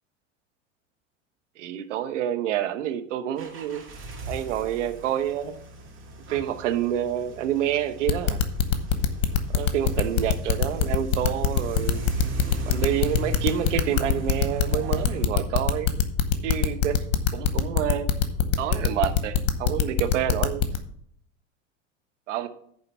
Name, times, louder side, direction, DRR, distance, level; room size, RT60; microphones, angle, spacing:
voice 1, 1.6-3.8 4.3-5.5 6.3-8.4 9.5-12.1 12.6-16.0 16.4-17.0 17.3-18.1 18.6-20.6 22.3-22.5, right 11 dB, 70° right, 9 dB, 0.9 m, -28 dB
sound 1, 3.4-15.3, right 2 dB, 30° right, 2.1 m, -38 dB
sound 2, 8.1-20.8, left 9 dB, 50° left, 1.1 m, -22 dB
9.2 x 3.7 x 7.0 m, 0.65 s
hypercardioid pair, 85°, 38 cm